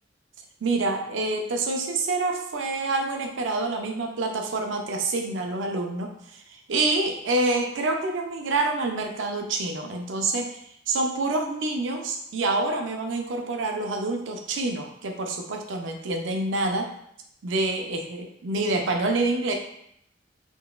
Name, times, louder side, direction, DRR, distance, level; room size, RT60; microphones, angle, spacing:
voice 1, 0.6-6.1 6.7-10.6 10.9-16.9 17.4-19.5, right 2 dB, 85° right, 3 dB, 0.5 m, -27 dB
3.8 x 2.3 x 2.3 m, 0.73 s
head